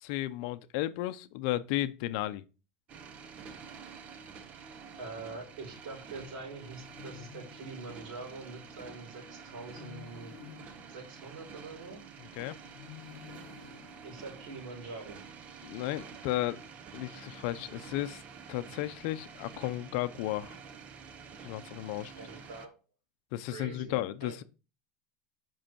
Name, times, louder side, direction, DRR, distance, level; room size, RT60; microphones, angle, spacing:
voice 1, 0.0-2.4 12.4-12.6 15.6-16.7 16.9-18.2 18.5-20.6 21.4-22.1 23.3-24.4, left 15 dB, 60° left, 0.6 m, -34 dB
sound 1, 2.9-22.7, right 6 dB, 30° right, 0.8 m, -49 dB
voice 2, 5.0-10.3 10.9-12.0 14.0-15.2 22.1-22.7 23.5-24.4, right 3 dB, 70° right, 4.0 m, -44 dB
sound 2, 6.2-8.3 9.4-12.1 12.7-14.9, left 11 dB, 85° left, 0.8 m, -53 dB
7.6 x 5.5 x 4.5 m
supercardioid pair, 150°, 4 cm